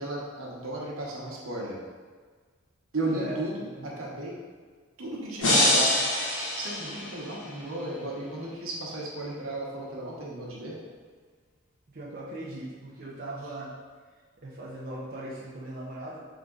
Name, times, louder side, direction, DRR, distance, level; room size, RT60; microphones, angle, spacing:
voice 1, 0.0-1.8 2.9-4.4 5.0-5.9 6.6-10.8, right 1 dB, 80° right, -3 dB, 1.0 m, -34 dB
voice 2, 3.1-4.0 11.9-13.7 14.4-16.2, right 1 dB, 45° right, -6 dB, 0.6 m, -39 dB
sound 1, 5.4-7.5, left 1 dB, 70° left, 1.2 m, -25 dB
3.7 x 3.6 x 3.8 m, 1.5 s
head